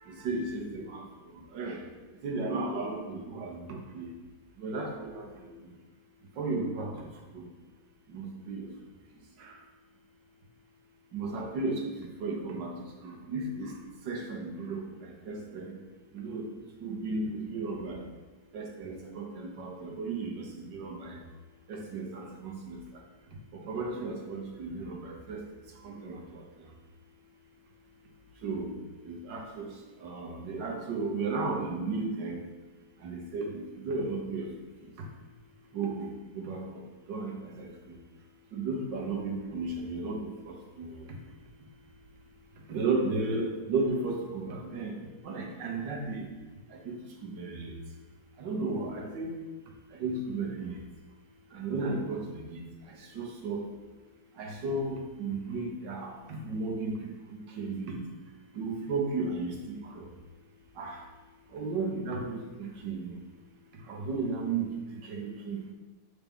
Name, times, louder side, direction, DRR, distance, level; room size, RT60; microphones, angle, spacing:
voice 1, 0.1-1.0 1.5-1.8 2.2-4.1 4.6-5.5 6.4-7.1 7.3-7.4 8.1-8.7 9.4-9.5 11.1-12.7 13.0-13.8 14.1-14.8 15.3-15.8 16.1-16.4 16.8-18.0 18.5-21.2 21.7-22.8 23.5-25.4 25.8-26.4 28.4-28.7 29.1-29.7 30.0-32.4 33.0-34.5 35.7-36.1 36.3-36.6 37.1-37.7 38.5-40.9 42.7-45.0 45.2-46.2 46.9-47.0 47.2-47.8 48.4-49.4 49.9-50.7 51.5-52.6 53.2-53.7 54.4-57.0 57.6-58.0 58.6-60.1 60.8-61.0 61.5-63.2 63.9-65.6, right 3 dB, 85° right, 0 dB, 1.7 m, -34 dB
6.9 x 4.7 x 3.6 m, 1.3 s
omnidirectional pair, 1.9 m